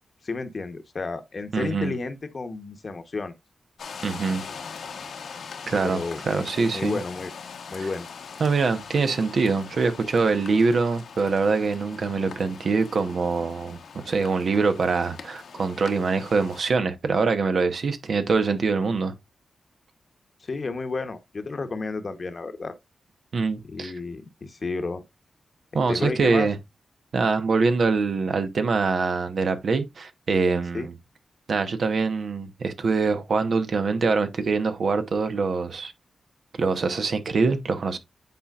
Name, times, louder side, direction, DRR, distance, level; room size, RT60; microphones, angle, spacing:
voice 1, 0.2-3.3 5.8-6.4 6.7-7.3 7.7-8.1 20.4-22.7 23.7-25.0 25.9-26.5 30.7-30.9, left 3 dB, 45° left, 1.0 m, -31 dB
voice 2, 1.5-1.9 4.0-4.4 5.7-7.0 7.8-7.9 8.4-13.8 14.0-19.1 23.3-23.9 25.7-26.6 27.1-30.9 31.5-35.9 36.6-38.0, right 4 dB, 65° right, 1.0 m, -24 dB
sound 1, 3.8-16.6, left 6 dB, 80° left, 1.2 m, -41 dB
9.1 x 4.3 x 2.4 m
cardioid pair, 85°, 0 cm